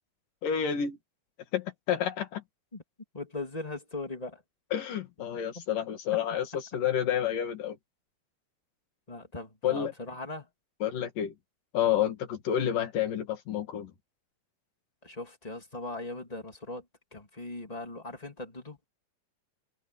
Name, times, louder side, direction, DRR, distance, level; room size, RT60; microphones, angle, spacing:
voice 1, 0.4-1.0 1.5-2.4 4.7-6.5 6.7-7.8 9.6-9.9 10.8-11.3 11.7-13.9, left 9 dB, 85° left, 4.0 m, -29 dB
voice 2, 3.1-4.4 5.5-5.6 9.1-10.5 15.0-16.8 17.1-18.8, left 2 dB, 10° left, 2.8 m, -39 dB
omnidirectional pair, 3.7 m